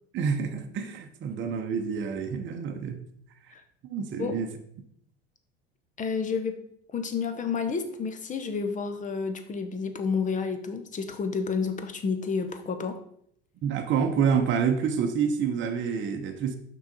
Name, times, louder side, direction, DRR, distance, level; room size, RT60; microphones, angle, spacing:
voice 1, 0.1-3.0 3.8-4.5 13.6-16.6, right 6 dB, 35° right, 5 dB, 0.9 m, -27 dB
voice 2, 6.0-6.6 6.9-13.0, left 5 dB, 25° left, 8 dB, 0.8 m, -30 dB
6.1 x 4.8 x 4.0 m, 0.69 s
hypercardioid pair, 75°, 32 cm